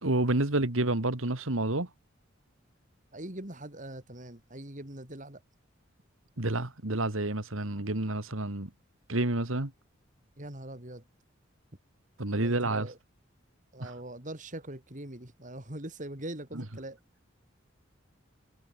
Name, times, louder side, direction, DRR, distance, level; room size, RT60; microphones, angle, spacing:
voice 1, 0.0-1.9 6.4-8.7 9.1-9.7 12.2-12.9 13.8-13.9, right 2 dB, 85° right, 2.4 m, -29 dB
voice 2, 3.1-5.4 10.4-11.1 12.4-13.0 13.7-17.0, right 1 dB, 40° right, 3.7 m, -42 dB
head